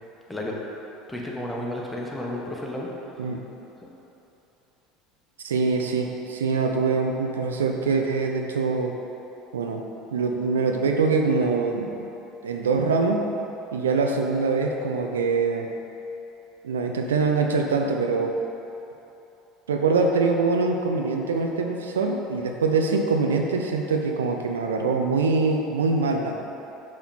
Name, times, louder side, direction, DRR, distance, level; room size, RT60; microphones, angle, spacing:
voice 1, 1.1-3.3 3.8-3.9, left 1 dB, 10° left, -3 dB, 1.3 m, -32 dB
voice 2, 5.4-8.9 9.5-9.8 10.1-12.1 12.4-13.2 13.7-15.7 16.6-18.3 19.7-26.4, right 4 dB, 80° right, 3 dB, 0.5 m, -24 dB
6.3 x 5.7 x 4.3 m, 3.0 s
figure-of-eight pair, 70°, 0 cm